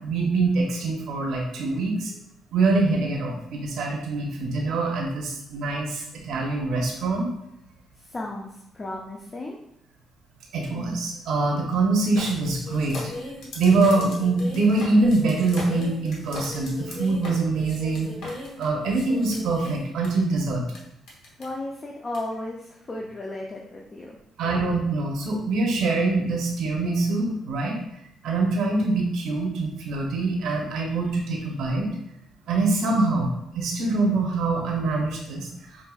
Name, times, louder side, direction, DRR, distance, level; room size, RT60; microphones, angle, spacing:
voice 1, 0.0-2.1 2.5-7.3 10.5-13.0 13.6-20.6 24.4-27.8 28.2-31.9 32.5-33.3 33.5-35.8, right 3 dB, 80° right, -1 dB, 0.7 m, -24 dB
voice 2, 8.0-9.6 21.4-24.2, left 2 dB, 30° left, -1 dB, 0.5 m, -34 dB
sound 1, 12.2-20.1 20.7-20.8 21.1-21.4 22.1-22.2, left 2 dB, 80° left, 1.0 m, -37 dB
5.0 x 2.6 x 2.3 m, 0.80 s
cardioid pair, 90°, 0 cm